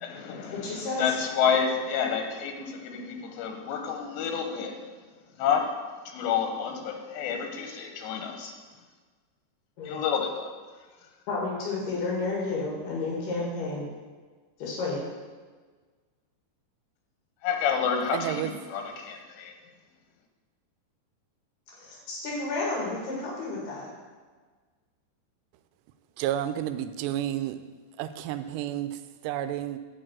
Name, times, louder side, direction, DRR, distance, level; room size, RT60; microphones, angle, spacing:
voice 1, 0.0-4.9 5.4-8.5 9.8-10.5 17.4-19.6, left 7 dB, 90° left, 4 dB, 3.2 m, -29 dB
voice 2, 0.6-1.0 9.8-10.0 11.3-13.9 14.6-15.0 21.8-23.9, left 3 dB, 70° left, -4 dB, 3.9 m, -31 dB
voice 3, 18.1-18.5 26.2-27.6 28.0-29.8, right 12 dB, 90° right, 11 dB, 2.7 m, -31 dB
10.0 x 4.6 x 7.6 m, 1.4 s
omnidirectional pair, 4.8 m